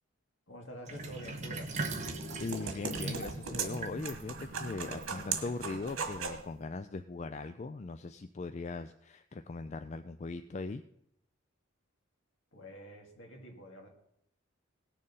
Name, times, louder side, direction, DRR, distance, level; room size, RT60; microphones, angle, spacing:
voice 1, 0.5-1.7 12.5-13.9, equal, 65° left, 1 dB, 2.4 m, -47 dB
Sink (filling or washing), 0.9-5.6, right 3 dB, 35° right, 1.2 m, -41 dB
sound 1, 1.2-6.5, right 5 dB, 80° right, 1.6 m, -39 dB
voice 2, 2.4-10.8, left 3 dB, 35° left, 10 dB, 0.4 m, -40 dB
18.0 x 6.7 x 5.4 m, 0.76 s
head